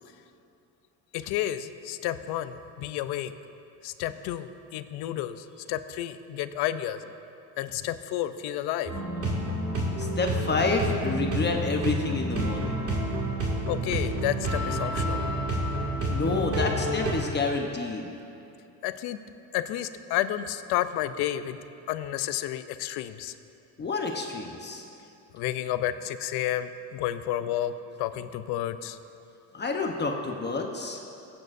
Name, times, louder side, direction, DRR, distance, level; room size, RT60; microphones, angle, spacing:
voice 1, 1.1-3.3 3.8-7.0 7.6-8.9 13.7-15.2 18.8-19.2 19.5-21.6 21.9-23.3 25.3-27.7 28.0-29.0, left 12 dB, 75° left, 11 dB, 0.7 m, -31 dB
sound 1, 8.9-17.1, right 1 dB, 35° right, 2.3 m, -29 dB
voice 2, 10.0-12.9 16.1-18.1 23.8-24.8 29.5-31.0, left 3 dB, 25° left, 2 dB, 0.9 m, -29 dB
20.0 x 8.9 x 2.6 m, 2.7 s
cardioid pair, 115°, 39 cm